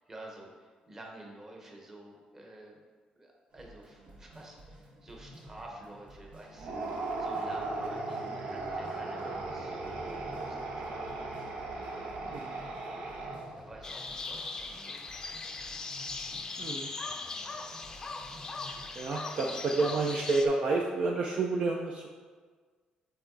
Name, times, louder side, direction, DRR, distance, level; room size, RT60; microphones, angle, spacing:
voice 1, 0.0-2.8 3.2-11.7 12.2-12.5 13.6-15.0 19.1-19.4 20.0-20.1, right 1 dB, 20° right, 0 dB, 1.1 m, -50 dB
sound 1, 3.5-19.0, equal, 65° right, 1.6 m, -53 dB
sound 2, 6.5-13.7, right 2 dB, 80° right, 1.1 m, -37 dB
voice 2, 12.2-12.6 16.6-16.9 19.0-22.1, right 3 dB, 50° right, 0 dB, 0.5 m, -29 dB
sound 3, 13.8-20.5, left 3 dB, 25° left, 0.6 m, -39 dB
7.8 x 4.6 x 3.9 m, 1.5 s
cardioid pair, 150°, 2 cm